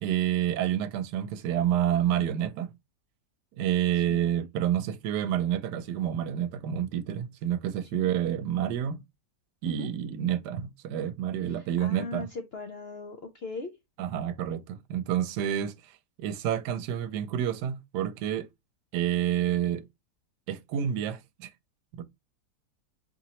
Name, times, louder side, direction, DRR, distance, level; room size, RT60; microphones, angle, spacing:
voice 1, 0.0-2.7 3.6-9.0 9.6-12.3 14.0-18.5 18.9-19.8 20.5-21.5 22.0-22.1, right 10 dB, 85° right, 1.2 m, -29 dB
voice 2, 11.5-13.7, left 3 dB, 65° left, 0.6 m, -39 dB
4.4 x 3.0 x 2.8 m
omnidirectional pair, 1.8 m